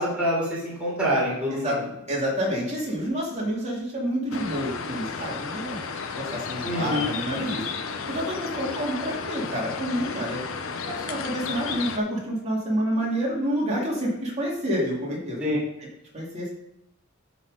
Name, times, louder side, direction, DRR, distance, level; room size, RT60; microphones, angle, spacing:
voice 1, 0.0-1.8 6.6-7.1 15.4-15.6, equal, 5° right, -8 dB, 3.6 m, -26 dB
voice 2, 2.1-5.8 6.2-7.6 8.1-10.4 10.9-15.9 16.1-16.5, equal, 30° right, -4 dB, 2.8 m, -28 dB
sound 1, 4.3-12.0, left 5 dB, 65° left, 0.7 m, -33 dB
12.0 x 4.2 x 4.9 m, 0.83 s
head